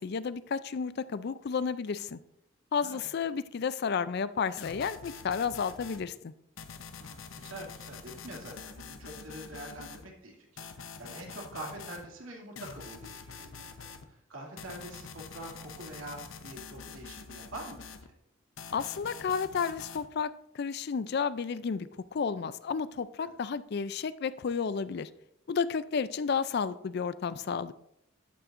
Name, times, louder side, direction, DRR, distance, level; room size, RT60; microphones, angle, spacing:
voice 1, 0.0-2.2 2.7-6.3 18.7-25.1 25.5-27.7, left 6 dB, 55° left, 15 dB, 0.4 m, -32 dB
voice 2, 2.8-3.3 7.0-18.1 23.2-23.3, right 1 dB, 80° right, 0 dB, 2.4 m, -45 dB
sound 1, 4.6-6.0 6.6-10.1 10.6-12.1 12.6-14.0 14.6-18.1 18.6-20.1, left 5 dB, 75° left, 0.8 m, -46 dB
11.5 x 8.7 x 2.6 m, 0.81 s
head